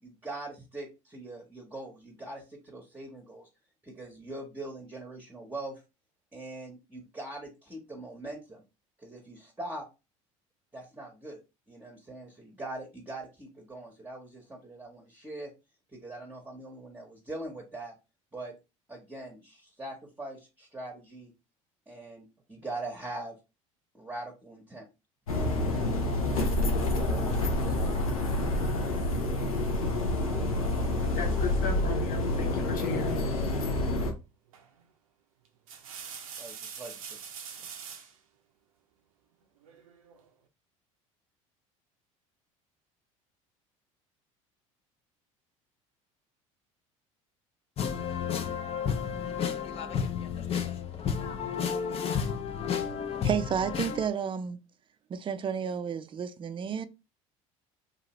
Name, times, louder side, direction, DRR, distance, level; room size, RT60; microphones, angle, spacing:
voice 1, 0.0-3.5 3.8-5.8 6.3-8.6 9.0-9.9 10.7-11.4 11.7-15.5 15.9-17.9 18.3-18.5 18.9-21.3 21.9-23.4 23.9-24.9 36.4-37.2, right 2 dB, 10° right, 0.9 m, -42 dB
sound 1, 25.3-34.1, left 2 dB, 90° left, 0.6 m, -28 dB
voice 2, 31.1-33.2, left 3 dB, 50° left, 1.0 m, -36 dB
sound 2, 34.5-34.8 35.4-38.2 39.6-40.3, right 7 dB, 85° right, 0.5 m, -44 dB
sound 3, 47.8-54.1, left 7 dB, 35° left, 0.5 m, -31 dB
voice 3, 53.2-54.6 55.1-56.9, right 7 dB, 30° right, 0.4 m, -31 dB
2.7 x 2.5 x 2.9 m
hypercardioid pair, 70°, 17 cm